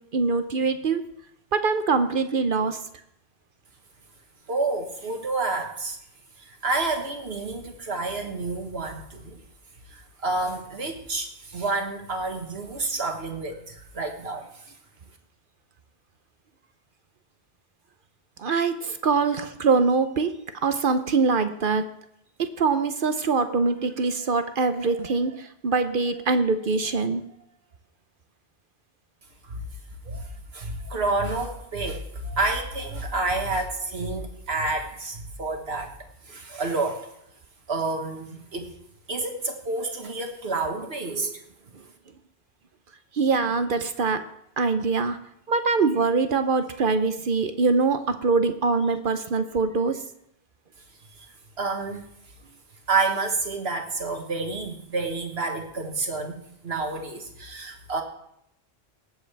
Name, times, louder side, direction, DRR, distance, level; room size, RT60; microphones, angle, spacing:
voice 1, 0.1-1.0 1.5-2.8 18.4-21.9 22.4-27.2 30.1-30.2 41.1-41.3 43.1-44.2 44.6-45.2 45.5-50.0, right 4 dB, 60° right, 9 dB, 0.9 m, -23 dB
voice 2, 4.5-6.0 6.5-9.4 9.9-14.5 29.4-29.6 30.1-30.2 30.5-35.9 36.3-37.1 37.7-38.7 39.1-41.3 51.6-52.1 52.9-58.0, right 3 dB, 75° right, 4 dB, 1.8 m, -29 dB
19.0 x 7.9 x 3.4 m, 0.76 s
omnidirectional pair, 1.1 m